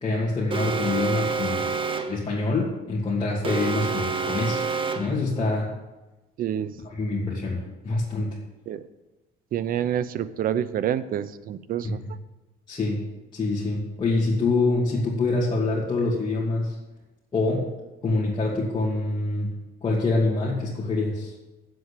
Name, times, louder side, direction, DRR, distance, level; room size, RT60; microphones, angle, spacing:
voice 1, 0.0-1.6 2.1-4.6 4.9-5.8 6.8-8.4 11.8-12.1 12.7-13.1 13.3-16.7 17.3-17.7 18.0-21.3, left 3 dB, 25° left, -6 dB, 2.4 m, -25 dB
Alarm, 0.5-2.3 3.4-5.2, right 5 dB, 30° right, 1.0 m, -28 dB
voice 2, 6.4-6.7 8.7-8.8 9.5-12.0, right 10 dB, 60° right, 15 dB, 0.7 m, -27 dB
7.9 x 7.8 x 8.3 m, 1.1 s
cardioid pair, 110°, 17 cm